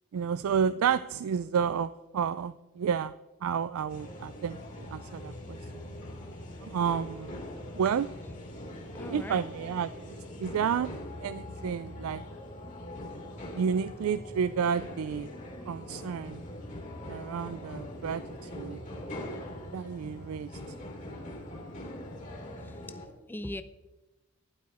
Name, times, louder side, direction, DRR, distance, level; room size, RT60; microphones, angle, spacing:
voice 1, 0.1-3.1 3.4-5.6 6.6-7.4 7.7-8.1 9.1-9.9 10.4-10.9 11.2-12.2 13.5-15.3 15.7-16.4 17.1-18.8 19.7-20.6, right 7 dB, 75° right, 15 dB, 0.3 m, -30 dB
sound 1, 3.9-23.1, left 1 dB, 35° left, 2.3 m, -42 dB
voice 2, 7.8-8.4 8.8-9.5 12.6-12.7 22.4-23.6, left 1 dB, 10° left, 11 dB, 0.4 m, -46 dB
12.5 x 11.0 x 4.2 m, 1.1 s
head